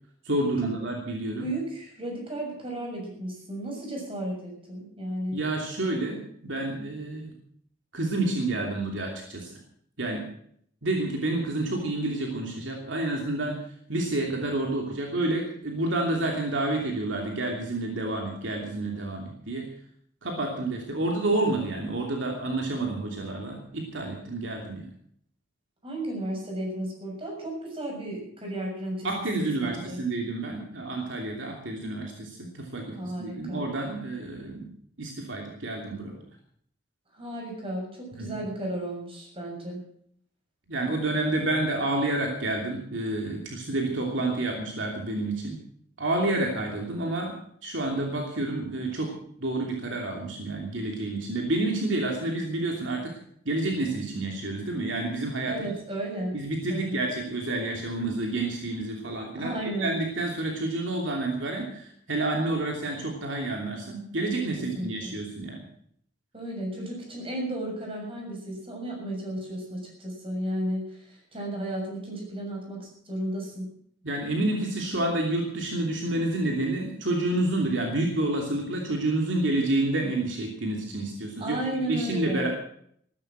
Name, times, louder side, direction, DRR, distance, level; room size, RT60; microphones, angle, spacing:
voice 1, 0.2-1.5 5.3-7.3 7.9-9.5 10.0-10.2 10.8-13.6 13.9-19.7 20.2-24.9 29.0-34.7 35.0-36.2 38.2-38.4 40.7-45.6 46.0-47.3 47.6-49.1 49.4-53.1 53.4-55.6 56.3-65.6 74.0-82.5, right 2 dB, 65° right, 1 dB, 2.9 m, -29 dB
voice 2, 1.4-5.4 25.8-30.0 32.9-33.7 37.1-39.8 55.5-56.3 56.7-57.0 59.4-60.0 64.7-65.1 66.3-73.7 81.4-82.5, right 1 dB, 30° right, 0 dB, 6.9 m, -34 dB
15.0 x 13.5 x 6.1 m, 0.65 s
head